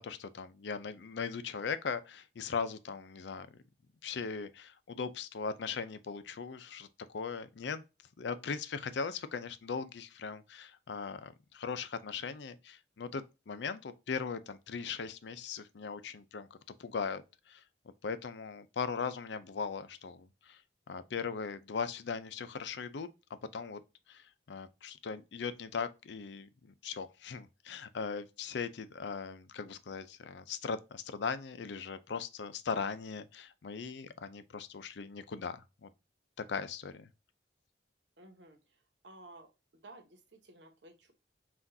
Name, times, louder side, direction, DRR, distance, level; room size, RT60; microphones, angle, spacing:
voice 1, 0.0-3.5 4.0-7.8 8.2-16.5 16.8-17.6 18.0-20.6 20.9-23.1 23.5-23.8 24.1-35.9 36.5-37.1, left 5 dB, 75° left, 0.5 m, -39 dB
voice 2, 38.2-39.5 39.7-41.1, right 2 dB, 85° right, 1.1 m, -55 dB
5.8 x 2.5 x 2.6 m
head